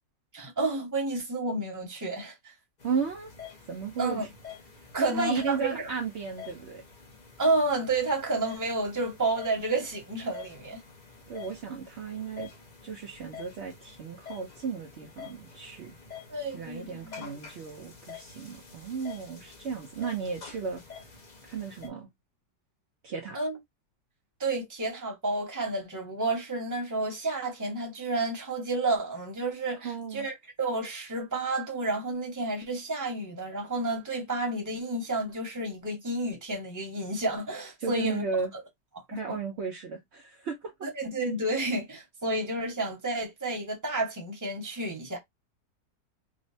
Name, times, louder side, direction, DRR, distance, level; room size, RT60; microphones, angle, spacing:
voice 1, 0.3-2.5 4.0-4.2 4.9-5.9 7.4-10.8 16.3-17.4 23.3-23.6 24.4-38.2 39.3-39.4 40.8-45.2, right 2 dB, 15° right, 0.7 m, -30 dB
sound 1, 2.8-21.9, left 6 dB, 50° left, 0.5 m, -48 dB
voice 2, 2.8-3.3 3.7-4.3 5.0-6.8 11.3-12.5 12.8-15.9 16.5-20.8 21.5-22.1 23.0-23.4 29.8-30.3 37.8-38.5 39.1-40.9, right 5 dB, 80° right, 0.6 m, -34 dB
3.7 x 2.1 x 2.6 m
omnidirectional pair, 1.9 m